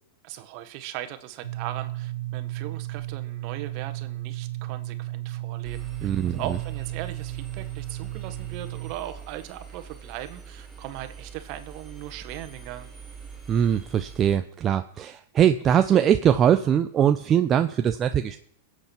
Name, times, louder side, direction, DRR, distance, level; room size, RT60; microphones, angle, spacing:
voice 1, 0.2-12.9, right 13 dB, 50° right, 10 dB, 1.5 m, -38 dB
sound 1, 1.4-8.9, right 16 dB, 75° right, 0.7 m, -34 dB
Engine, 5.6-14.4, right 6 dB, 5° right, 5.3 m, -44 dB
voice 2, 6.0-6.6 13.5-18.4, right 9 dB, 30° right, 8 dB, 0.6 m, -22 dB
22.5 x 8.1 x 4.6 m, 0.65 s
hypercardioid pair, 110°, 0 cm